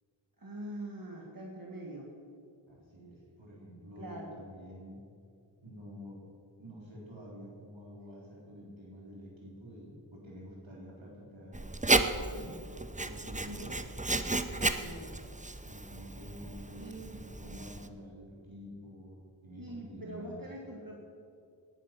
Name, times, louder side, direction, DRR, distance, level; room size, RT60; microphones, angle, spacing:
voice 1, 0.4-2.1 4.0-4.3 13.5-13.7 14.7-15.1 16.8-17.2 19.5-21.0, right 1 dB, 45° right, -2 dB, 2.0 m, -43 dB
voice 2, 2.7-5.0 5.6-6.2 6.6-11.7 12.0-12.5 13.0-13.7 15.6-20.4, equal, 75° right, -4 dB, 3.7 m, -48 dB
Writing, 11.5-17.9, right 2 dB, 15° right, 0.7 m, -33 dB
18.5 x 10.5 x 5.9 m, 2.4 s
wide cardioid pair, 50°, 47 cm